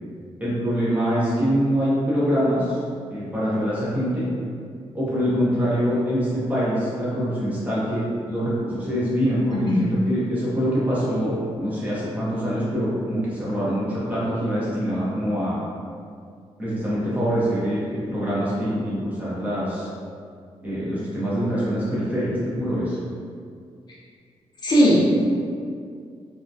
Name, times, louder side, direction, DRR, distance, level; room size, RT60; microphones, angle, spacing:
voice 1, 0.4-2.8 3.1-4.2 4.9-15.6 16.6-19.9 20.6-23.0, equal, 15° right, -9 dB, 0.6 m, -24 dB
voice 2, 24.6-25.0, equal, 40° left, -8 dB, 0.5 m, -18 dB
2.3 x 2.1 x 2.5 m, 2.2 s
wide cardioid pair, 160°, 11 cm